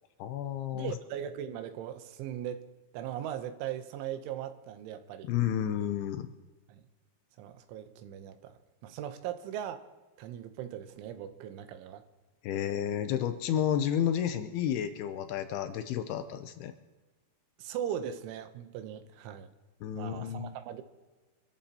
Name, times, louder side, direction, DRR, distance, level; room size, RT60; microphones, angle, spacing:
voice 1, 0.2-0.9 5.2-6.3 12.4-16.7 19.8-20.5, left 10 dB, 85° left, 9 dB, 2.2 m, -31 dB
voice 2, 0.7-2.6 2.9-5.3 6.7-6.8 7.4-8.5 8.8-9.8 10.2-12.0 17.6-19.5 19.9-20.8, right 10 dB, 90° right, 9 dB, 3.4 m, -39 dB
26.0 x 14.0 x 2.9 m, 1.3 s
omnidirectional pair, 5.4 m